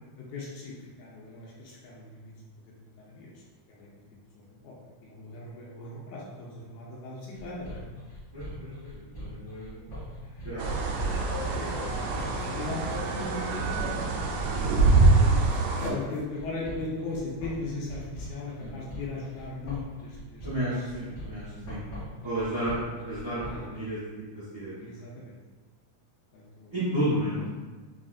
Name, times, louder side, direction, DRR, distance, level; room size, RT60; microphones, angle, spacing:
voice 1, 0.2-2.3 2.8-3.4 3.7-3.9 4.4-4.8 5.0-7.8 10.2-10.4 11.3-14.2 15.7-20.5 23.4-23.7 24.8-25.4 26.3-26.7, left 3 dB, 80° left, -4 dB, 1.9 m, -38 dB
sound 1, 7.3-23.8, equal, 60° left, 0.7 m, -41 dB
voice 2, 8.3-9.8 10.4-10.9 18.6-18.8 20.4-21.8 22.2-24.0 24.3-24.8 26.7-27.5, right 1 dB, 60° right, -12 dB, 0.9 m, -32 dB
sound 2, 10.6-15.9, right 3 dB, 80° right, 1.5 m, -25 dB
4.8 x 2.4 x 2.5 m, 1.3 s
omnidirectional pair, 3.4 m